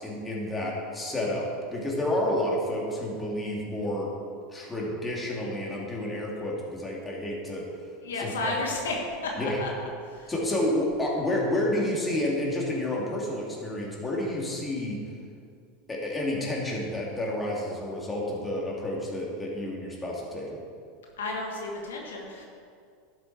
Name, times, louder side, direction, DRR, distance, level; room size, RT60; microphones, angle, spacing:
voice 1, 0.0-4.1 4.5-7.6 8.2-8.5 9.4-9.6 10.3-15.0 15.9-20.6, left 1 dB, 15° left, -3 dB, 3.0 m, -30 dB
voice 2, 8.0-8.9 9.2-9.7 10.0-10.3 21.2-22.5, left 2 dB, 80° left, 0 dB, 1.6 m, -32 dB
11.5 x 8.1 x 4.4 m, 2.3 s
hypercardioid pair, 90°, 0 cm